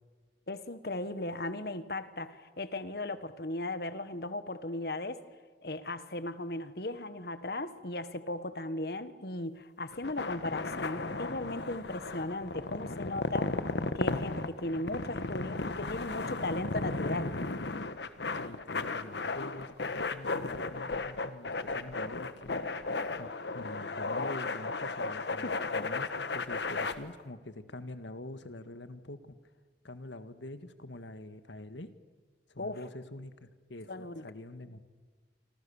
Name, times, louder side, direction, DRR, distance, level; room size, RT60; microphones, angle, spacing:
voice 1, 0.5-5.2 5.6-13.6 13.9-17.3 25.4-25.6 32.6-32.8 33.9-34.2, left 2 dB, 60° left, 12 dB, 1.4 m, -37 dB
sound 1, 9.9-26.9, left 3 dB, 75° left, 1.3 m, -35 dB
voice 2, 18.4-22.6 23.2-29.4 29.8-31.9 32.5-34.8, left 1 dB, 90° left, 10 dB, 1.7 m, -45 dB
27.5 x 26.5 x 7.2 m, 1.4 s
head